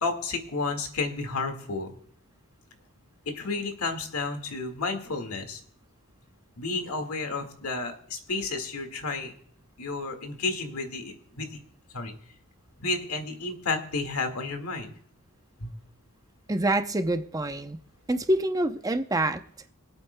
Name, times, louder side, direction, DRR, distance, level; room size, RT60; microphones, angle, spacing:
voice 1, 0.0-1.9 3.3-5.6 6.6-9.3 9.8-11.6 11.9-12.1 12.8-14.9 15.6-15.7, left 3 dB, 85° left, 6 dB, 1.8 m, -31 dB
voice 2, 16.5-17.8 18.1-19.4, right 1 dB, 15° right, 9 dB, 0.6 m, -26 dB
26.0 x 8.9 x 2.2 m, 0.66 s
head